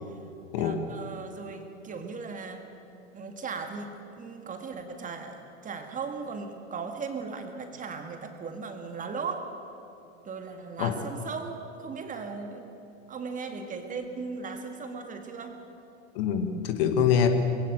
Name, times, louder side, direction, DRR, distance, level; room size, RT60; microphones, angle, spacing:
voice 1, 0.5-2.7 3.1-9.6 10.2-12.7 13.1-15.6, right 4 dB, 20° right, 6 dB, 1.9 m, -37 dB
voice 2, 16.2-17.3, left 8 dB, 45° left, 7 dB, 1.9 m, -24 dB
21.5 x 16.5 x 8.0 m, 2.8 s
figure-of-eight pair, 95°, 40 cm